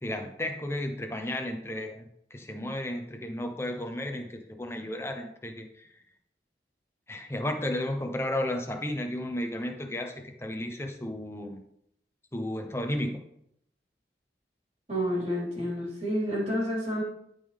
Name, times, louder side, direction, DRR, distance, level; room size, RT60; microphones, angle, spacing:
voice 1, 0.0-5.9 7.1-11.6 12.3-13.2, left 1 dB, 15° left, 4 dB, 0.9 m, -33 dB
voice 2, 14.9-17.0, equal, 35° right, -5 dB, 4.0 m, -29 dB
13.0 x 5.3 x 3.6 m, 0.74 s
head